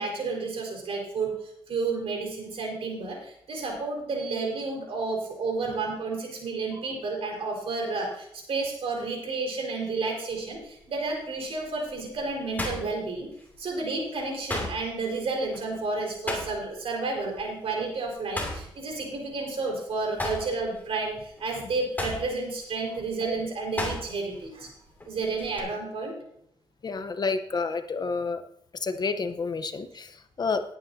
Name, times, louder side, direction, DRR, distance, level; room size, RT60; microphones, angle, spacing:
voice 1, 0.0-13.3 13.6-24.7 25.1-26.1, right 3 dB, 75° right, 0 dB, 4.5 m, -31 dB
sound 1, 10.3-10.7 11.2-13.7 14.0-16.9 17.2-17.4 17.8-19.7 20.0-24.4 24.7-25.6, left 2 dB, 20° left, 2.6 m, -36 dB
voice 2, 26.8-28.4 28.8-30.6, left 4 dB, 45° left, 9 dB, 0.9 m, -29 dB
19.0 x 9.3 x 2.7 m, 0.73 s
wide cardioid pair, 125°, 10 cm